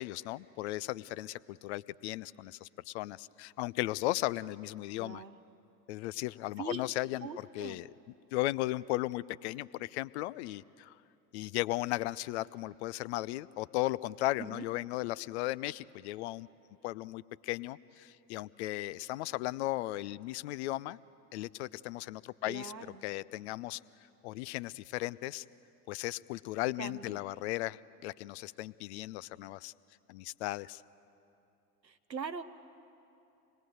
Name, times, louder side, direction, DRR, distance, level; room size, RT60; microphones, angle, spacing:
voice 1, 0.0-5.2 5.9-7.9 8.3-10.9 11.3-16.5 16.8-21.0 21.3-22.7 23.0-23.8 24.2-25.4 25.9-29.7 30.1-30.8, left 17 dB, 45° left, 18 dB, 0.5 m, -36 dB
voice 2, 5.0-5.4 6.6-6.8 7.2-7.8 14.4-14.6 22.4-23.0 26.8-27.2 31.8-32.4, right 5 dB, 90° right, 11 dB, 0.9 m, -42 dB
27.0 x 20.5 x 7.8 m, 2.7 s
figure-of-eight pair, 75°, 50 cm